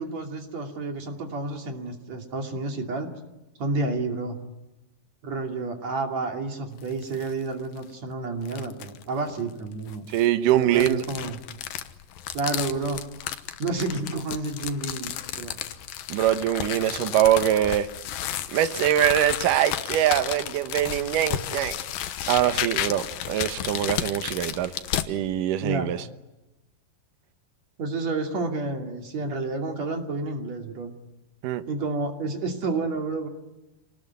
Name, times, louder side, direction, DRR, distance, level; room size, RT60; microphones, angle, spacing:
voice 1, 0.0-3.1 3.6-4.4 5.2-10.0 10.5-11.4 12.3-13.0 13.6-15.6 25.6-25.9 27.8-30.9 31.7-33.3, right 3 dB, 50° right, 3.8 m, -30 dB
sound 1, 6.8-7.3 7.8-7.9 8.5-9.0 9.9-25.1, left 11 dB, 80° left, 2.8 m, -33 dB
voice 2, 10.1-11.0 16.1-17.9 18.5-21.7 22.3-24.7 25.1-26.0 31.4-31.6, right 11 dB, 70° right, 2.6 m, -23 dB
28.0 x 19.5 x 9.5 m
omnidirectional pair, 4.0 m